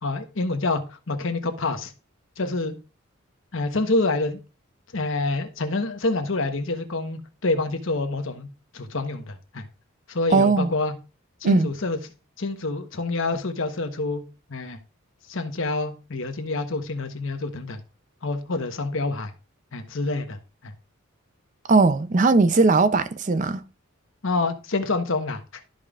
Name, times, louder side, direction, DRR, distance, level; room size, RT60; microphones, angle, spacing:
voice 1, 0.0-1.9 2.4-2.7 3.5-4.4 4.9-8.5 8.7-9.6 10.1-10.9 11.4-12.0 12.4-14.2 14.5-14.8 15.3-17.8 18.2-19.3 19.7-20.4 20.6-20.7 24.2-25.4, left 2 dB, 70° left, 1.1 m, -27 dB
voice 2, 10.3-10.7 11.4-11.7 21.7-23.6, right 3 dB, 35° right, 0.5 m, -18 dB
13.0 x 5.1 x 2.4 m
head